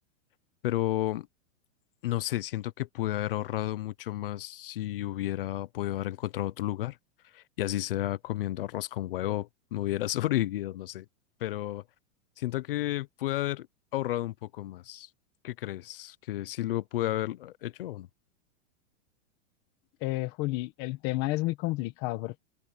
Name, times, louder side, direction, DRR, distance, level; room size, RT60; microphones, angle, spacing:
voice 1, 0.6-1.3 2.0-7.0 7.3-11.1 11.4-11.8 12.4-13.7 13.9-15.1 15.4-18.1, left 14 dB, 45° left, 0.6 m, -32 dB
voice 2, 20.0-22.4, left 19 dB, 25° left, 1.4 m, -31 dB
supercardioid pair, 175°, 40 cm